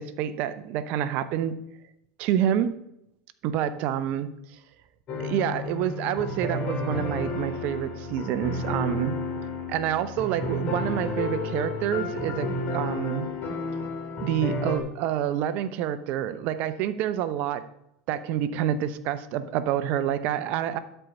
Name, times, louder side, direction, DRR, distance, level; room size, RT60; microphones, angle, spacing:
voice 1, 0.0-1.6 2.2-2.7 3.4-4.3 5.2-9.1 9.7-13.3 14.2-17.6 18.1-20.8, right 10 dB, 60° right, 13 dB, 0.7 m, -28 dB
sound 1, 5.1-14.8, left 2 dB, 45° left, 3.0 m, -31 dB
12.0 x 4.5 x 5.3 m, 0.79 s
hypercardioid pair, 90°, 3 cm